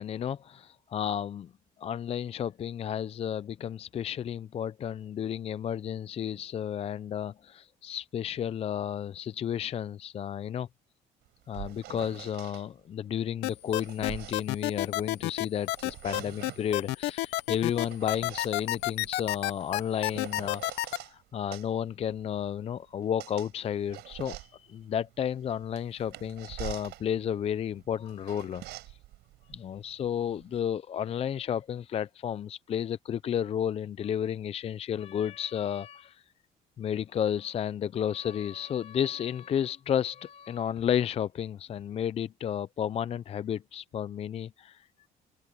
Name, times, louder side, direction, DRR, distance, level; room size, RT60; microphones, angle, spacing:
voice 1, 0.0-1.5 1.8-10.7 11.5-28.6 29.5-36.2 36.8-45.1, left 9 dB, 35° left, 0.4 m, -32 dB
sound 1, 11.2-12.6 13.4-15.2 15.6-16.7 17.5-21.1 21.5-30.6, right 17 dB, 85° right, 4.8 m, -46 dB
sound 2, 13.4-21.0, left 19 dB, 90° left, 0.7 m, -29 dB
open air
cardioid pair, 110°, 17 cm